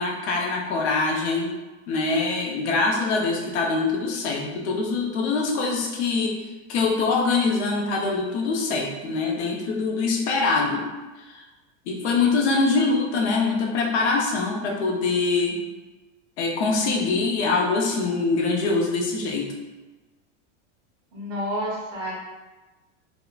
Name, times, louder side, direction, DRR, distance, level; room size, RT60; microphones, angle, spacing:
voice 1, 0.0-1.6 1.9-10.9 11.3-11.4 11.9-15.6 16.4-19.5, left 3 dB, 65° left, 0 dB, 0.6 m, -24 dB
voice 2, 21.1-22.1, equal, 35° right, -3 dB, 0.5 m, -29 dB
2.7 x 2.1 x 2.3 m, 1.2 s
supercardioid pair, 175°, 36 cm